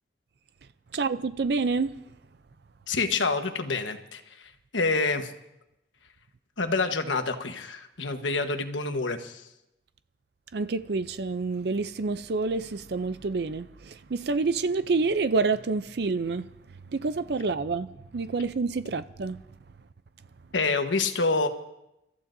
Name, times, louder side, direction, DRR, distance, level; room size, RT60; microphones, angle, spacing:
voice 1, 0.9-2.0 10.5-19.4, right 4 dB, 60° right, 0.5 m, -28 dB
voice 2, 2.9-5.3 6.6-9.4 20.5-21.5, left 3 dB, 85° left, 1.3 m, -27 dB
30.0 x 14.5 x 2.7 m
head